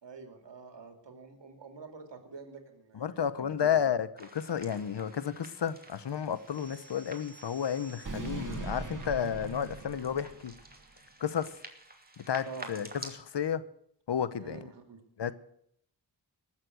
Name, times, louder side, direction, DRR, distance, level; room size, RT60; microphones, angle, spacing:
voice 1, 0.0-3.8 12.5-12.7 14.4-15.0, right 4 dB, 80° right, 2.5 m, -47 dB
voice 2, 2.9-10.6 11.2-11.5 12.2-13.6 14.1-14.6 15.2-15.3, left 8 dB, 70° left, 0.9 m, -32 dB
sound 1, 4.2-13.2, right 2 dB, 20° right, 2.7 m, -50 dB
sound 2, 6.5-10.8, right 2 dB, 45° right, 2.5 m, -42 dB
19.0 x 7.5 x 7.8 m
cardioid pair, 45°, 43 cm